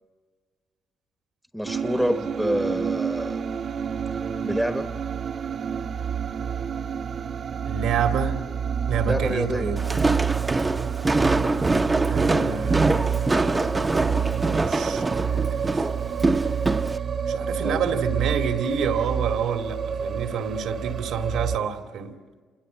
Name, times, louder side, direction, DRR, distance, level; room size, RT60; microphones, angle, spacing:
voice 1, 1.5-3.4 4.4-4.9 9.0-9.8 17.6-17.8, equal, ahead, 8 dB, 1.2 m, -27 dB
sound 1, 1.7-21.6, right 7 dB, 55° right, 1.2 m, -28 dB
voice 2, 7.6-8.4 8.9-9.8 12.1-15.8 17.3-22.1, right 7 dB, 85° right, 5 dB, 2.2 m, -29 dB
Walk footsteps, 9.8-17.0, right 2 dB, 20° right, 0.9 m, -24 dB
27.5 x 22.5 x 9.1 m, 1.5 s
cardioid pair, 90°, 0 cm